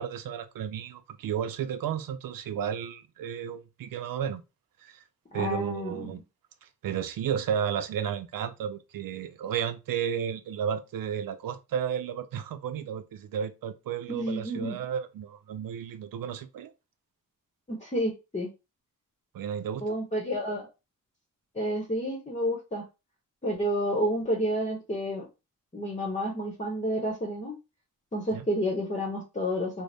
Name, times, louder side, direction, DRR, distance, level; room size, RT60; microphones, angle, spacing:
voice 1, 0.0-4.4 4.8-5.0 5.3-6.2 6.6-16.7 19.3-20.0 28.3-28.5, right 8 dB, 90° right, 0.5 m, -33 dB
voice 2, 5.3-6.1 14.1-14.8 17.7-18.5 19.8-20.7 21.5-22.8 23.4-25.3 25.7-27.5 28.1-29.8, equal, 20° left, 0.8 m, -30 dB
3.9 x 2.0 x 3.3 m
wide cardioid pair, 110°, 33 cm